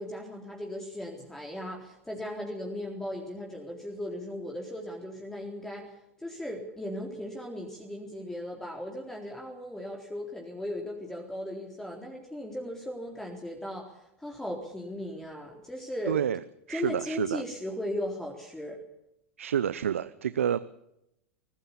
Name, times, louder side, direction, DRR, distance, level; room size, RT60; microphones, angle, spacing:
voice 1, 0.0-5.9 6.2-13.9 14.2-16.2 16.7-18.8, left 1 dB, 5° left, 0 dB, 3.9 m, -37 dB
voice 2, 16.1-16.4 16.7-17.4 19.4-20.6, right 9 dB, 80° right, 15 dB, 0.8 m, -28 dB
24.5 x 15.5 x 7.2 m, 0.81 s
hypercardioid pair, 95°, 7 cm